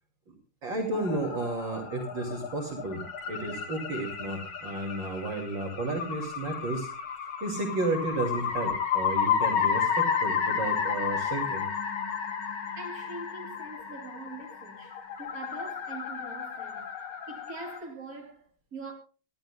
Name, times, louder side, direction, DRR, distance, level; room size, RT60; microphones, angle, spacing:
voice 1, 0.6-6.9 7.4-11.6, right 2 dB, 60° right, 3.2 m, -32 dB
sound 1, 0.9-17.8, left 7 dB, 75° left, 2.5 m, -32 dB
voice 2, 12.5-16.9 17.3-18.9, right 3 dB, 40° right, 3.6 m, -43 dB
26.0 x 12.0 x 2.3 m
omnidirectional pair, 2.3 m